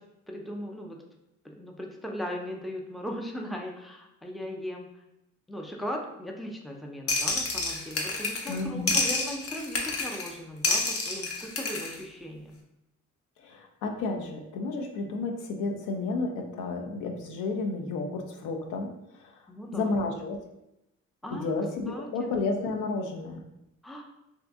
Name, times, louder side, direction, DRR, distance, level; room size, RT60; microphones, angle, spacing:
voice 1, 0.3-1.0 1.4-4.9 5.5-12.6 19.5-19.9 21.2-21.5 21.9-22.3 23.8-24.1, equal, ahead, 1 dB, 0.4 m, -38 dB
sound 1, 7.1-8.6 8.9-10.3 10.6-12.0, left 3 dB, 50° left, 0.7 m, -29 dB
voice 2, 8.5-8.9 13.4-19.4 19.7-20.4 21.3-23.4, left 3 dB, 90° left, 3 dB, 0.5 m, -32 dB
2.7 x 2.5 x 3.5 m, 0.87 s
cardioid pair, 90°, 30 cm